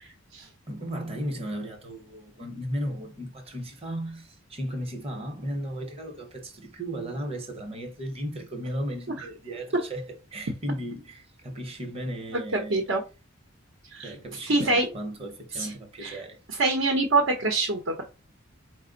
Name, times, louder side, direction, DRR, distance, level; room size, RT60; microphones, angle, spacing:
voice 1, 0.7-10.0 10.3-12.9 14.0-16.4, equal, 30° right, 0.8 m, -35 dB
voice 2, 12.5-13.0 13.9-14.1 14.5-14.9 15.6-15.7 16.0-16.2 16.6-18.0, right 2 dB, 70° right, 0.8 m, -24 dB
4.2 x 2.1 x 3.8 m
head